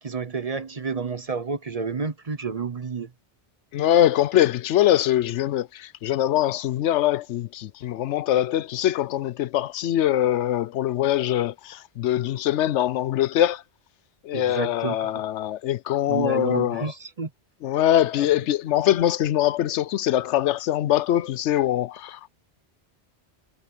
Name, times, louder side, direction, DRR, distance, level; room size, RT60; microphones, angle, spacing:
voice 1, 0.0-3.1 14.3-15.2 16.1-17.3 18.2-18.3, right 5 dB, 35° right, 0.8 m, -30 dB
voice 2, 3.7-13.6 14.2-16.9 17.6-22.3, left 12 dB, 85° left, 0.9 m, -23 dB
omnidirectional pair, 1.2 m